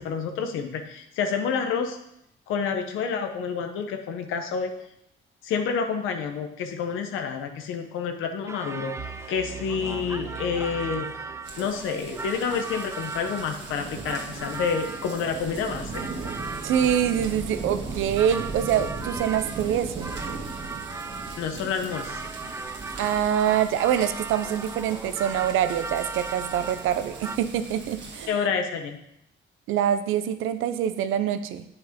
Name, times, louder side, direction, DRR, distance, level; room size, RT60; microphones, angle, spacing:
voice 1, 0.0-2.0 2.5-4.7 5.4-11.1 11.6-16.1 21.4-22.2 28.3-29.0, left 6 dB, 90° left, 5 dB, 0.9 m, -29 dB
sound 1, 8.5-27.4, right 3 dB, 15° right, 0.4 m, -38 dB
sound 2, 9.0-12.0, right 7 dB, 35° right, 0.9 m, -41 dB
sound 3, 11.5-28.3, right 3 dB, 65° right, 1.8 m, -38 dB
voice 2, 16.6-20.1 23.0-28.3 29.7-31.6, right 9 dB, 90° right, 11 dB, 0.6 m, -25 dB
8.1 x 5.8 x 5.0 m, 0.77 s
cardioid pair, 90°, 20 cm